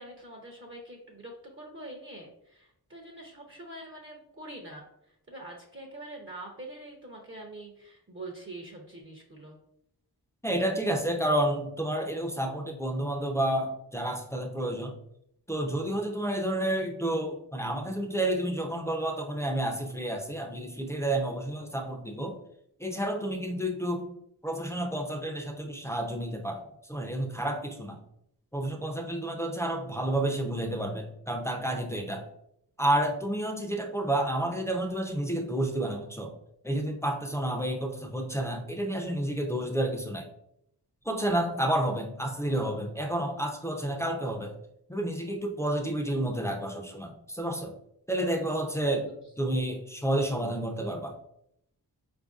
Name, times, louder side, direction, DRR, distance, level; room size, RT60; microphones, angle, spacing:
voice 1, 0.0-9.6 48.8-49.1 49.4-49.6, right 1 dB, 30° right, 1 dB, 0.7 m, -45 dB
voice 2, 10.4-14.9 15.5-22.4 22.8-24.1 24.4-26.6 26.9-28.0 28.5-32.3 32.8-36.4 36.6-40.3 41.1-44.5 44.9-47.7 48.1-51.1, right 1 dB, 5° left, 1 dB, 0.5 m, -30 dB
4.3 x 2.6 x 2.4 m, 0.75 s
cardioid pair, 50°, 40 cm